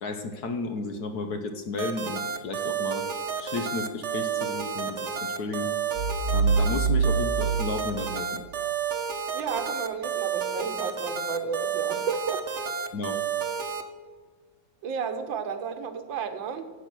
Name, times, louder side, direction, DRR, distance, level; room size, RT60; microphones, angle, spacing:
voice 1, 0.0-3.0 3.4-5.7 6.3-8.4 12.9-13.2, left 3 dB, 60° left, 7 dB, 1.4 m, -33 dB
sound 1, 1.8-13.8, right 7 dB, 45° right, 1.1 m, -31 dB
sound 2, 6.0-8.6, right 4 dB, 65° right, 1.7 m, -26 dB
voice 2, 9.3-12.6 14.8-16.7, right 5 dB, 80° right, 8 dB, 1.8 m, -32 dB
14.5 x 8.5 x 6.1 m, 1.5 s
omnidirectional pair, 2.1 m